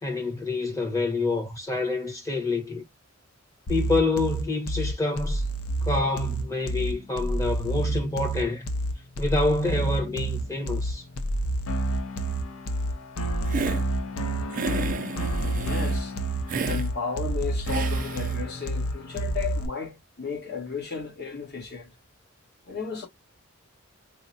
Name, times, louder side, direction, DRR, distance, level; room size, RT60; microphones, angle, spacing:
voice 1, 0.0-2.8 3.7-5.4 5.8-8.7 9.2-11.0, left 3 dB, 15° left, 1.0 m, -27 dB
sound 1, 3.7-19.7, right 1 dB, 85° left, 0.6 m, -29 dB
Hiss, 13.5-13.8 14.5-16.0 16.5-16.9 17.7-18.4, right 5 dB, 40° right, 0.4 m, -32 dB
voice 2, 15.5-16.1 16.7-21.9 22.7-23.1, left 5 dB, 50° left, 1.5 m, -34 dB
3.6 x 2.2 x 2.6 m
head